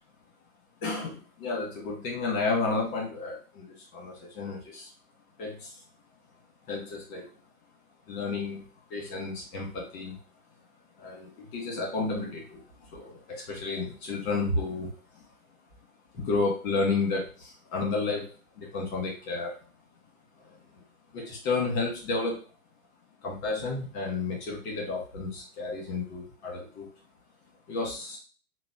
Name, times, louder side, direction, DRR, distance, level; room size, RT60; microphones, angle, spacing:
voice 1, 0.8-4.9 5.4-5.8 6.7-7.3 8.1-10.2 11.0-15.2 16.1-19.5 20.4-20.8 21.1-22.4 23.2-26.9 27.7-28.2, left 3 dB, 40° left, -2 dB, 1.5 m, -32 dB
3.8 x 2.2 x 2.6 m, 0.38 s
figure-of-eight pair, 105°, 45 cm